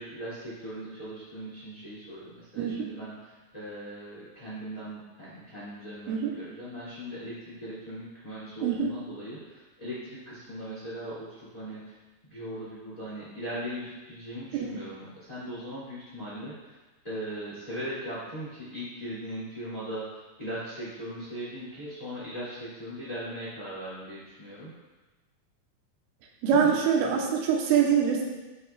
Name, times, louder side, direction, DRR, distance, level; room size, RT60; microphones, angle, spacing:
voice 1, 0.0-11.9 12.3-16.8 17.0-20.0 20.4-24.7 26.4-26.8, equal, 30° left, -9 dB, 0.6 m, -39 dB
voice 2, 2.6-2.9 6.1-6.3 8.6-8.9 14.5-14.7 26.4-28.2, right 7 dB, 80° right, 0 dB, 3.4 m, -24 dB
10.5 x 7.8 x 2.4 m, 1.2 s
omnidirectional pair, 5.8 m